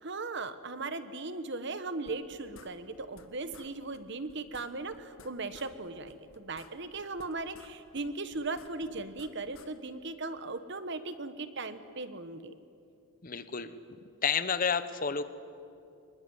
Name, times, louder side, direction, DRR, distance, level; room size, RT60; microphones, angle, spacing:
voice 1, 0.0-12.5, right 3 dB, 55° right, 11 dB, 1.3 m, -38 dB
sound 1, 2.1-3.3 3.5-3.7 3.9-4.0 4.3-5.7 6.0-7.7 8.0-9.7, left 3 dB, 75° left, 1.8 m, -54 dB
voice 2, 13.2-13.7 14.2-15.2, left 6 dB, 40° left, 12 dB, 1.0 m, -30 dB
24.5 x 21.0 x 9.6 m, 2.6 s
head